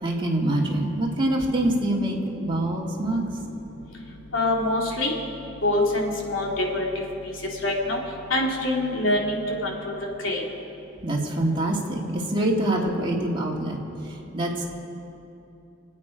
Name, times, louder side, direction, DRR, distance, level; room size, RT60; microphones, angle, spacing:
voice 1, 0.0-3.3 11.0-13.8 14.0-14.7, right 1 dB, 25° right, -2 dB, 2.1 m, -25 dB
voice 2, 4.3-5.1 5.6-6.9 7.6-8.0 8.3-9.9 10.2-10.4, left 1 dB, 85° left, -1 dB, 2.6 m, -24 dB
27.0 x 9.0 x 5.1 m, 2.8 s
head